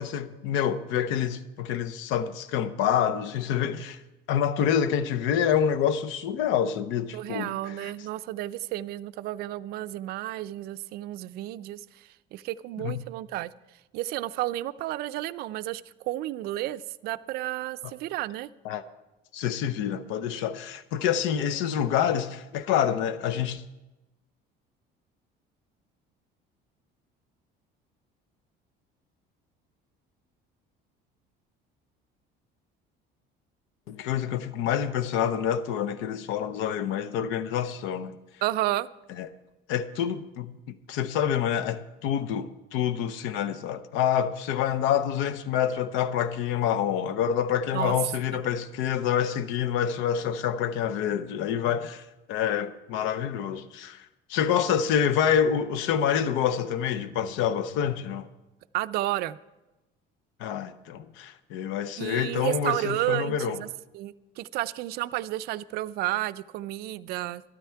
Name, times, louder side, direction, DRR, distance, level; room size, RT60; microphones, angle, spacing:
voice 1, 0.0-4.0 4.3-7.9 12.8-13.0 18.6-18.8 19.3-23.6 33.9-38.2 39.2-39.3 39.7-52.0 52.3-54.0 54.3-58.3 60.4-63.6, left 9 dB, 80° left, 0.7 m, -27 dB
voice 2, 7.1-11.8 12.3-13.5 13.9-18.5 38.4-38.9 47.7-47.9 48.3-48.4 58.7-59.4 62.0-63.7 63.9-67.4, right 15 dB, 55° right, 0.4 m, -31 dB
13.0 x 12.5 x 4.5 m
cardioid pair, 180°, 20 cm